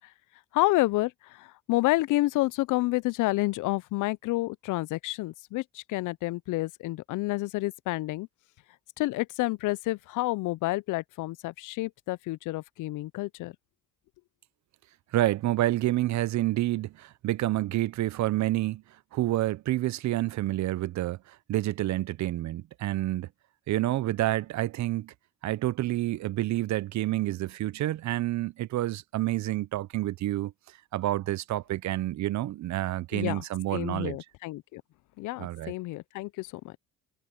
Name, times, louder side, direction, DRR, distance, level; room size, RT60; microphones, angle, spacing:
voice 1, 0.5-8.3 9.0-13.6 33.1-33.4 33.7-34.8 35.2-36.8, left 19 dB, 85° left, 0.5 m, -29 dB
voice 2, 15.1-18.8 19.1-23.3 23.7-25.1 25.4-30.5 30.9-34.2 35.4-35.7, right 15 dB, 70° right, 0.6 m, -28 dB
cardioid pair, 90°, 30 cm